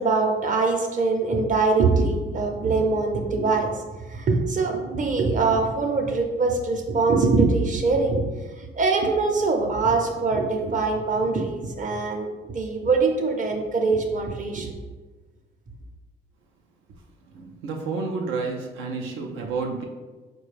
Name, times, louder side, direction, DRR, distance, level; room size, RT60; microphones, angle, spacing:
voice 1, 0.0-3.7 4.1-8.2 8.8-12.3 12.5-14.7, right 3 dB, 40° right, 3 dB, 0.6 m, -23 dB
voice 2, 17.3-19.8, right 4 dB, 85° right, 1 dB, 0.5 m, -30 dB
4.2 x 2.2 x 3.2 m, 1.3 s
cardioid pair, 90°, 20 cm